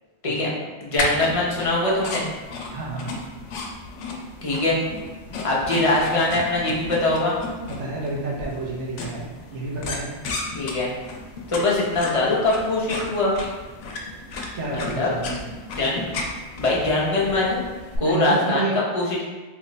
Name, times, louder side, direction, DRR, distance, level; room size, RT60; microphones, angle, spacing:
voice 1, 0.2-0.5 2.7-3.2 7.7-9.3 9.5-10.1 14.5-15.4 18.0-18.8, right 3 dB, 80° right, -3 dB, 1.1 m, -30 dB
voice 2, 0.8-2.2 4.4-4.8 5.4-7.3 10.5-10.9 11.5-13.3 14.7-15.1 15.7-16.2 16.6-17.6 18.0-18.7 18.9-19.3, left 2 dB, 35° left, -5 dB, 0.6 m, -22 dB
sound 1, 1.0-18.0, left 2 dB, 85° left, 0.9 m, -34 dB
3.2 x 2.1 x 3.8 m, 1.2 s
omnidirectional pair, 1.2 m